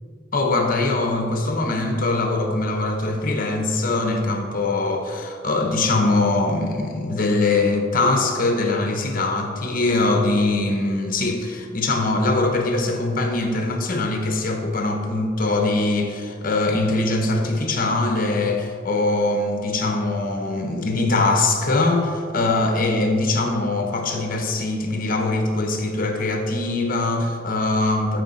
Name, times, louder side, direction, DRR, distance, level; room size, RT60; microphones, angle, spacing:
voice 1, 0.3-28.2, left 2 dB, 45° left, 3 dB, 0.9 m, -22 dB
14.0 x 5.0 x 4.0 m, 2.2 s
head